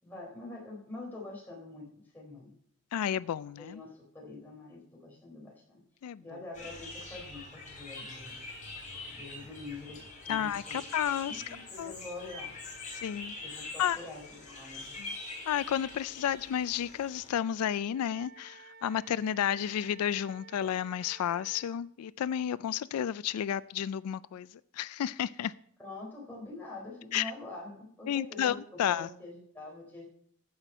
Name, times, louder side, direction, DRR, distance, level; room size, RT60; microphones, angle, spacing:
voice 1, 0.0-2.5 3.6-5.8 6.2-8.4 9.2-10.8 11.2-12.5 13.4-15.0 25.8-30.1, left 2 dB, 10° left, 3.8 m, -45 dB
voice 2, 2.9-3.8 6.0-6.4 10.3-11.4 11.8-11.9 12.9-13.4 13.8-14.0 15.0-15.2 15.5-24.5 24.7-25.5 27.1-27.3 28.1-29.1, left 9 dB, 90° left, 0.3 m, -32 dB
sound 1, 6.5-17.3, left 3 dB, 35° left, 4.1 m, -44 dB
Wind instrument woodwind instrument, 17.9-21.8, right 4 dB, 45° right, 0.9 m, -54 dB
15.0 x 5.9 x 5.4 m
head